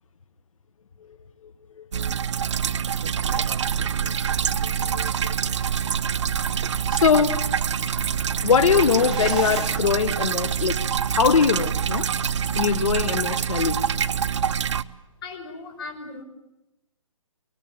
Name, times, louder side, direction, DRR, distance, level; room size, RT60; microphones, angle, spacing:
voice 1, 1.4-2.2 4.0-4.1 4.6-5.3 6.9-7.6 8.4-10.8 11.1-12.1 12.5-13.8, left 6 dB, 70° left, 10 dB, 1.4 m, -23 dB
sound 1, 1.9-14.8, right 8 dB, 55° right, 0.9 m, -25 dB
sound 2, 3.5-13.2, right 1 dB, 30° right, 6.0 m, -43 dB
sound 3, 7.9-10.0, right 2 dB, 5° right, 2.8 m, -38 dB
voice 2, 15.2-16.2, left 3 dB, 45° left, 5 dB, 5.9 m, -37 dB
24.5 x 23.5 x 8.8 m, 0.92 s
hypercardioid pair, 160°, 17 cm